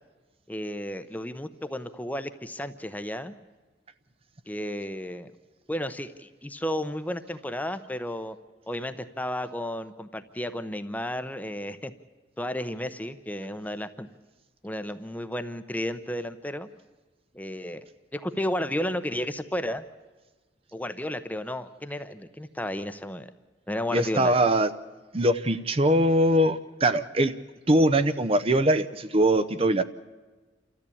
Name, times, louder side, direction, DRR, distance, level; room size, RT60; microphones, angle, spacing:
voice 1, 0.5-3.3 4.5-5.3 5.7-8.4 8.7-11.9 12.4-14.1 14.6-16.7 17.3-17.8 18.1-19.8 20.7-23.3 23.7-24.4, left 1 dB, 10° left, 11 dB, 0.8 m, -33 dB
voice 2, 23.9-24.7 25.1-27.3 27.7-29.8, right 1 dB, 30° right, 11 dB, 0.7 m, -22 dB
28.5 x 14.0 x 8.6 m, 1.3 s
head